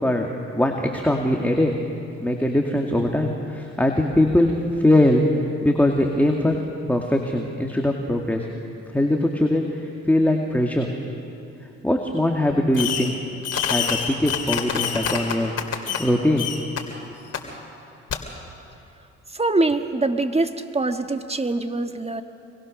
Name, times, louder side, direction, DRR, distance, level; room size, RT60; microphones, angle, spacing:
voice 1, 0.0-1.7 2.2-4.5 4.8-5.2 5.6-6.6 6.9-8.5 8.9-10.9 11.8-13.2 13.7-15.5 16.0-16.5, left 1 dB, 5° left, 1 dB, 2.3 m, -21 dB
Fireworks, 12.7-13.2 13.4-16.1 16.4-16.8 17.3-17.4 18.1-18.2, left 7 dB, 55° left, 2.9 m, -26 dB
voice 2, 19.3-22.2, right 2 dB, 20° right, 8 dB, 1.6 m, -23 dB
26.5 x 22.5 x 6.6 m, 2.6 s
supercardioid pair, 60°, 30 cm